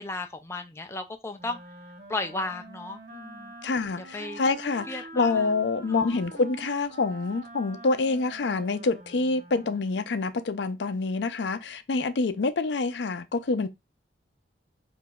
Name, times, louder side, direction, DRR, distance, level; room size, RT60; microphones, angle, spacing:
voice 1, 0.0-1.6 2.1-3.5 4.0-4.4 4.9-5.5 5.8-6.2, left 2 dB, 15° left, 0.4 m, -35 dB
Wind instrument woodwind instrument, 1.3-10.0, right 2 dB, 45° right, 0.7 m, -45 dB
voice 2, 3.6-13.7, left 3 dB, 80° left, 0.5 m, -27 dB
4.8 x 2.6 x 2.3 m
head